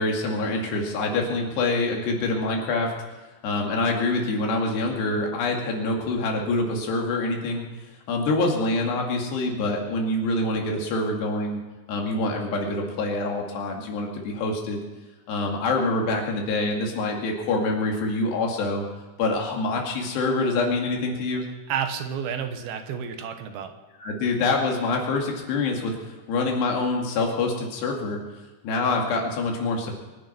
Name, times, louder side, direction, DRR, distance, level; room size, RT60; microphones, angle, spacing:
voice 1, 0.0-2.9 3.4-7.7 8.1-11.6 11.9-14.8 15.3-18.9 19.2-21.4 24.0-28.2 28.6-30.0, left 2 dB, 85° left, 0 dB, 4.4 m, -25 dB
voice 2, 21.7-23.7, right 8 dB, 75° right, 7 dB, 2.8 m, -30 dB
23.0 x 10.0 x 5.9 m, 1.2 s
omnidirectional pair, 4.8 m